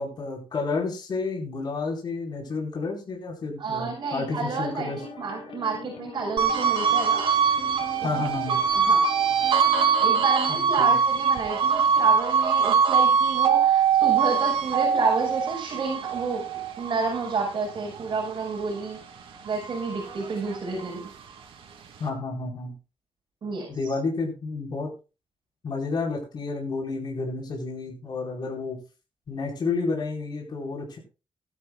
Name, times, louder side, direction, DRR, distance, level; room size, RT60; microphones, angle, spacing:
voice 1, 0.0-5.0 8.0-8.6 10.5-10.9 22.0-22.7 23.7-24.9 25.6-28.8 29.3-31.0, left 4 dB, 50° left, -1 dB, 4.7 m, -30 dB
voice 2, 3.6-7.3 8.0-8.1 8.5-9.0 10.0-19.0 19.4-21.1 23.4-23.9, right 4 dB, 55° right, -3 dB, 5.6 m, -30 dB
sound 1, 4.3-10.4, left 6 dB, 85° left, 3.8 m, -42 dB
sound 2, 6.4-19.0 19.4-21.1, right 6 dB, 90° right, 2.8 m, -23 dB
19.0 x 12.0 x 2.4 m, 0.31 s
cardioid pair, 125°, 9 cm